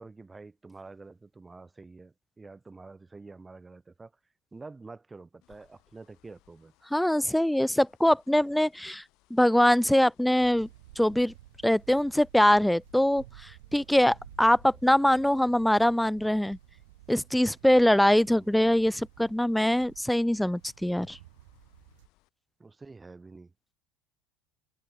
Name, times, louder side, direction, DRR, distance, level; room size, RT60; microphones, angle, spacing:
voice 1, 0.0-4.1 4.5-6.7 18.3-18.8 22.6-23.5, right 3 dB, 15° right, 4.8 m, -48 dB
sound 1, 5.4-22.3, left 21 dB, 60° left, 6.0 m, -64 dB
voice 2, 6.9-9.0 9.3-10.7 11.0-11.3 11.6-16.6 17.1-21.2, left 1 dB, 5° left, 0.4 m, -23 dB
sound 2, 10.4-22.1, right 18 dB, 75° right, 1.4 m, -54 dB
hypercardioid pair, 75°, 0 cm